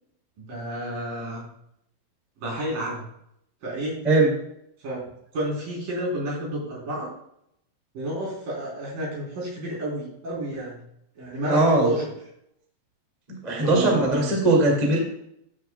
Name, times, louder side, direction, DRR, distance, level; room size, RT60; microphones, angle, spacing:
voice 1, 0.4-1.5 2.4-3.1 3.6-4.0 4.8-5.0 5.3-7.1 7.9-10.8 11.2-12.0 13.5-14.3, right 1 dB, 55° right, -4 dB, 5.3 m, -30 dB
voice 2, 11.5-11.9 13.4-15.0, right 2 dB, 15° right, -1 dB, 1.4 m, -20 dB
14.0 x 7.7 x 2.3 m, 0.75 s
omnidirectional pair, 4.9 m